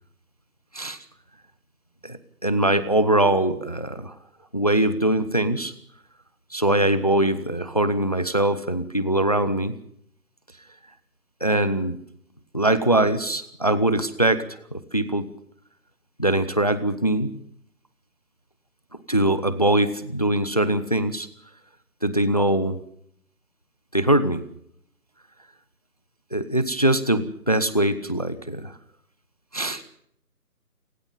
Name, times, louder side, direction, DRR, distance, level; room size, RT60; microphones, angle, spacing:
voice 1, 2.0-4.1 4.5-5.7 6.5-9.8 11.4-12.0 12.5-15.3 16.2-17.4 19.1-21.3 22.0-22.8 23.9-24.5 26.3-28.8 29.5-29.8, right 1 dB, 25° left, 14 dB, 0.9 m, -22 dB
28.5 x 16.5 x 5.5 m, 0.70 s
figure-of-eight pair, 170°, 47 cm